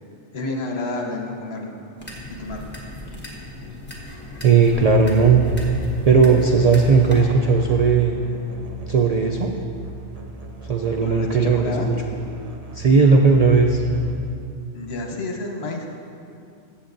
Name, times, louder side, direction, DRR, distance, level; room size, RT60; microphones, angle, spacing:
voice 1, 0.3-1.8 2.4-2.7 11.0-11.9 14.7-15.9, left 2 dB, 65° left, 2 dB, 1.2 m, -30 dB
sound 1, 2.0-7.2, left 1 dB, 10° left, 1.3 m, -36 dB
voice 2, 4.4-5.5 6.0-8.1 8.9-9.5 10.6-11.8 12.7-13.8, right 5 dB, 65° right, 2 dB, 0.4 m, -16 dB
Musical instrument, 4.7-14.4, left 2 dB, 40° right, 0.7 m, -35 dB
15.5 x 7.0 x 2.6 m, 2.5 s
omnidirectional pair, 1.2 m